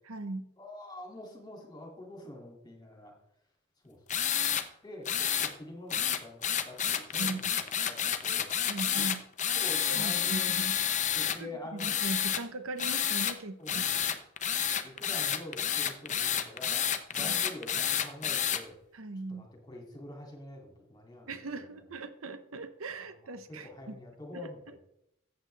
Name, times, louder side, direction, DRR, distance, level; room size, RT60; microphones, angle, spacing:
voice 1, 0.1-0.5 7.2-7.5 8.7-9.2 9.9-10.8 11.4-13.9 17.1-17.4 18.9-19.5 21.3-24.0 24.3-24.8, right 3 dB, 75° right, 10 dB, 0.9 m, -39 dB
voice 2, 0.6-3.1 3.8-4.0 4.8-8.5 9.0-9.1 9.5-10.6 11.1-11.9 13.6-14.0 14.8-18.8 19.3-21.8 23.0-24.8, left 1 dB, 20° left, 1 dB, 2.6 m, -46 dB
sound 1, 4.1-4.6 5.1-5.5 5.9-11.4 11.8-12.4 12.8-13.3 13.7-18.6, left 9 dB, 35° left, 0.8 m, -30 dB
14.0 x 8.2 x 3.4 m, 0.79 s
head